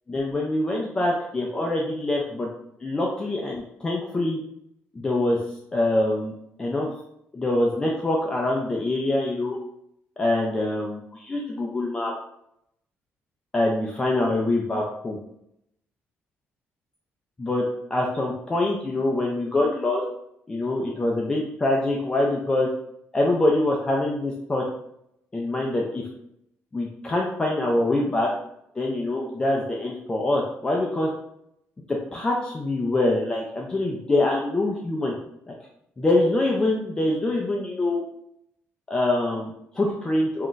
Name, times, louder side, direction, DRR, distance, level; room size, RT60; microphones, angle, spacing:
voice 1, 0.1-2.5 2.8-4.4 4.9-5.4 5.7-6.3 6.6-6.9 7.3-9.6 10.2-12.1 13.5-15.2 17.4-17.6 17.9-20.0 20.5-22.7 23.1-24.6 25.3-26.1 26.7-28.3 28.8-31.1 32.1-35.2 35.5-35.6 36.0-38.0 38.9-40.5, left 2 dB, 15° left, -2 dB, 0.3 m, -24 dB
2.4 x 2.1 x 3.8 m, 0.76 s
cardioid pair, 160°, 5 cm